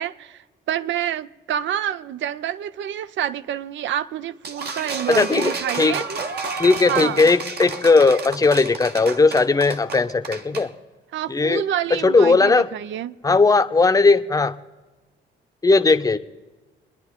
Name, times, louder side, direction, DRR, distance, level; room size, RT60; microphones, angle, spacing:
voice 1, 0.0-6.1 6.9-7.3 11.1-13.1, right 10 dB, 70° right, 0.6 m, -28 dB
sound 1, 4.4-10.7, right 4 dB, 55° right, 1.3 m, -31 dB
voice 2, 5.1-6.0 6.6-10.7 11.3-11.6 11.9-12.7 13.2-14.5 15.6-16.2, left 3 dB, 15° left, 0.8 m, -17 dB
24.5 x 10.5 x 3.6 m
cardioid pair, 90°, 20 cm